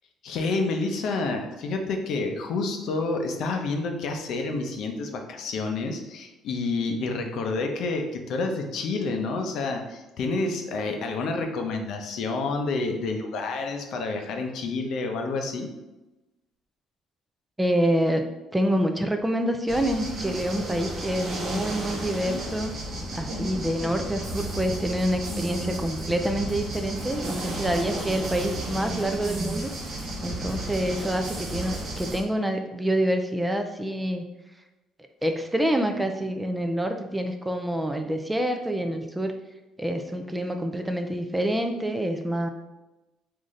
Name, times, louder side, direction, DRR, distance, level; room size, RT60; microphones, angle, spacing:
voice 1, 0.2-15.7, left 3 dB, 65° left, 4 dB, 0.5 m, -29 dB
voice 2, 17.6-22.8 23.1-29.7 30.2-34.2 35.2-39.4 39.8-42.5, right 1 dB, 10° right, 5 dB, 0.3 m, -27 dB
sound 1, 19.7-32.2, right 1 dB, 45° right, 0.9 m, -33 dB
sound 2, 24.2-32.2, right 2 dB, 75° right, 1.0 m, -40 dB
3.8 x 2.6 x 3.1 m, 1.0 s
cardioid pair, 115°, 0 cm